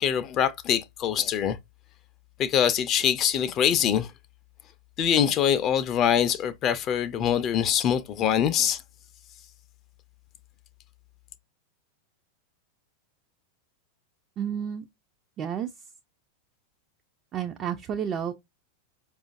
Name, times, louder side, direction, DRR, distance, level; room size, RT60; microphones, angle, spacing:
voice 1, 0.0-1.6 2.4-4.1 5.0-8.8, left 9 dB, 35° left, 0.4 m, -24 dB
voice 2, 14.4-14.9 15.4-15.7 17.3-18.3, right 8 dB, 30° right, 0.4 m, -30 dB
4.8 x 2.4 x 2.4 m
figure-of-eight pair, 90°, 0 cm